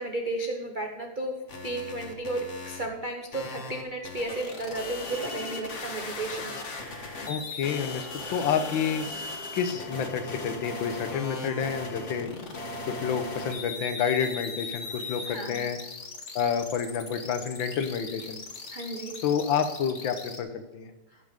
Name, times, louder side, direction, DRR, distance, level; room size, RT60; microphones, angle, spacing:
voice 1, 0.0-1.3 1.6-6.6 15.2-15.6 18.7-19.1, right 2 dB, 85° right, 2 dB, 0.4 m, -33 dB
sound 1, 1.5-2.9 3.3-20.4, left 3 dB, 40° left, 1.4 m, -38 dB
voice 2, 7.3-9.1 9.5-12.3 12.8-15.8 16.3-18.4 19.2-20.5 20.7-20.9, left 7 dB, 70° left, 9 dB, 1.5 m, -29 dB
16.0 x 5.6 x 5.1 m, 1.2 s
omnidirectional pair, 2.4 m